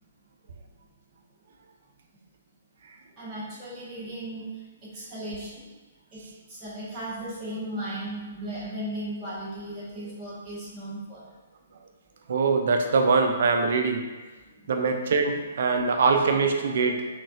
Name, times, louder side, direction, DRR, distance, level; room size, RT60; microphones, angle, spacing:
voice 1, 3.2-5.7 6.1-6.2 6.5-11.2 14.6-14.7, right 1 dB, 25° right, -8 dB, 1.2 m, -36 dB
voice 2, 12.3-14.1 14.7-17.1, right 4 dB, 60° right, 4 dB, 0.4 m, -23 dB
3.9 x 2.3 x 2.5 m, 1.2 s
figure-of-eight pair, 120°, 0 cm